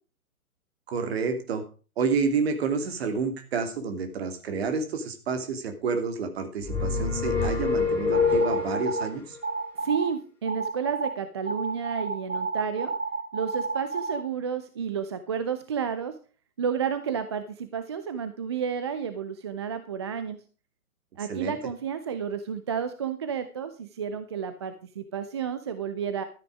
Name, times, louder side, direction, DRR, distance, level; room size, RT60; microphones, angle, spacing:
voice 1, 0.9-1.6 2.0-9.4 21.3-21.6, right 5 dB, 45° right, 8 dB, 2.6 m, -29 dB
sound 1, 6.6-9.1, left 4 dB, 5° left, 2.7 m, -25 dB
sound 2, 8.1-9.1 9.4-10.1 10.5-11.1 11.5-14.2, right 4 dB, 65° right, 3.3 m, -30 dB
voice 2, 9.8-12.9 13.3-16.2 16.6-20.4 21.2-26.2, right 7 dB, 20° right, 10 dB, 0.5 m, -31 dB
13.0 x 9.3 x 4.8 m, 0.37 s
figure-of-eight pair, 125°, 43 cm